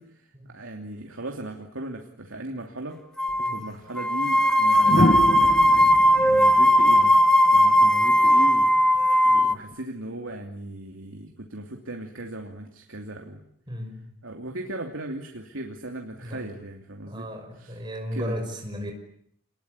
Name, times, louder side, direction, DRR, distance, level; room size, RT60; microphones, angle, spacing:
voice 1, 0.0-7.2 7.5-8.7 9.0-13.4 14.2-17.3 17.5-17.8 18.1-18.4, right 1 dB, 85° right, 2.9 m, -37 dB
sound 1, 3.2-3.6 4.0-9.5, equal, 5° left, 1.3 m, -18 dB
sound 2, 3.3-3.5 4.8-7.9 9.4-9.7, left 1 dB, 45° left, 1.4 m, -27 dB
voice 2, 13.7-14.2 16.2-16.5 17.0-18.9, equal, 25° right, 5.9 m, -35 dB
28.0 x 21.0 x 9.7 m
head